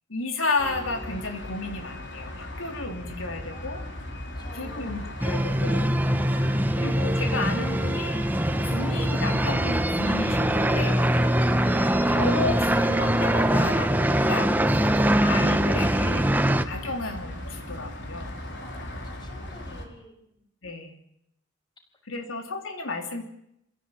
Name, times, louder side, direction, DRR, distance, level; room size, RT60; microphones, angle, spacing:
voice 1, 0.1-3.8 4.5-5.9 6.7-8.3 8.6-11.1 12.1-14.6 15.2-16.3 16.6-18.4 20.6-21.0 22.1-23.2, left 3 dB, 85° left, 4 dB, 3.4 m, -32 dB
sound 1, 0.6-19.9, left 1 dB, 60° left, 4.7 m, -38 dB
voice 2, 3.5-5.2 18.6-20.4 21.8-21.9 22.1-22.2, left 1 dB, 25° left, 3 dB, 6.2 m, -51 dB
sound 2, 5.2-16.6, right 1 dB, 10° right, 1.0 m, -23 dB
27.0 x 16.5 x 9.2 m, 0.76 s
head